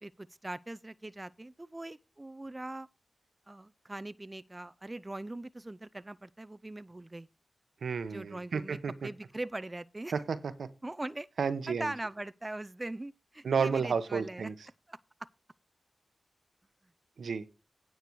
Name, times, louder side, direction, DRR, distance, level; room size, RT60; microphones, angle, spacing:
voice 1, 0.0-2.9 3.5-7.3 8.1-10.2 10.8-11.3 11.7-14.5 14.9-15.0, right 2 dB, 25° right, 0.5 m, -41 dB
voice 2, 7.8-8.9 10.1-10.7 11.4-11.9 13.4-14.5 17.2-17.5, right 6 dB, 80° right, 1.0 m, -31 dB
9.5 x 7.8 x 4.7 m
cardioid pair, 40°, 0 cm